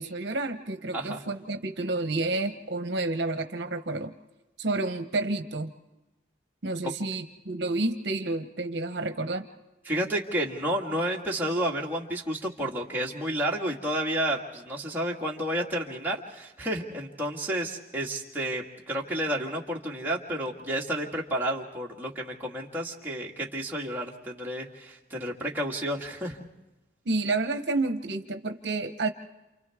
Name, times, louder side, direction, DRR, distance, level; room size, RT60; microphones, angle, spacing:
voice 1, 0.0-4.1 4.6-5.7 6.6-9.5 27.1-29.1, right 2 dB, 65° right, 8 dB, 0.9 m, -30 dB
voice 2, 9.9-26.4, right 1 dB, 10° right, -3 dB, 1.9 m, -31 dB
29.0 x 28.5 x 3.6 m, 1.0 s
head